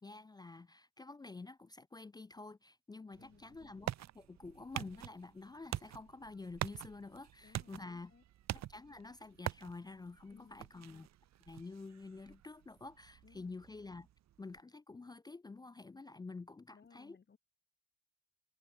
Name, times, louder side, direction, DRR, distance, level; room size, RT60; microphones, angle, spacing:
voice 1, 0.0-8.1 8.5-11.1 11.5-14.1 14.4-17.2, left 3 dB, 15° left, 0.3 m, -49 dB
sound 1, 3.1-14.6, right 12 dB, 65° right, 0.9 m, -46 dB
voice 2, 3.2-3.6 7.4-7.8 8.1-8.2 10.3-10.7 13.2-13.6 16.7-17.4, left 6 dB, 35° left, 2.1 m, -62 dB
cardioid pair, 90°, 30 cm